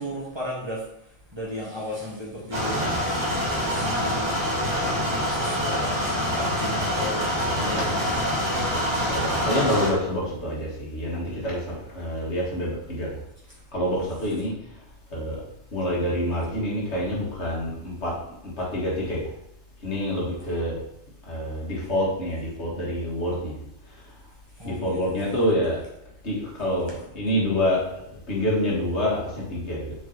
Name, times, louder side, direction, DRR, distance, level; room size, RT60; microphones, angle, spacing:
voice 1, 0.0-4.5 4.8-8.2 13.5-13.6 24.5-25.0, equal, 25° right, -5 dB, 1.4 m, -36 dB
sound 1, 2.5-9.9, equal, 55° right, 2.6 m, -25 dB
voice 2, 7.6-8.0 8.5-8.7 9.0-13.2 13.7-14.5 15.1-15.4 15.7-18.1 18.4-19.3 19.8-20.8 21.2-23.6 23.9-24.1 24.6-25.8 26.2-30.0, equal, 65° left, -5 dB, 2.0 m, -27 dB
5.4 x 4.4 x 3.9 m, 0.80 s
omnidirectional pair, 1.2 m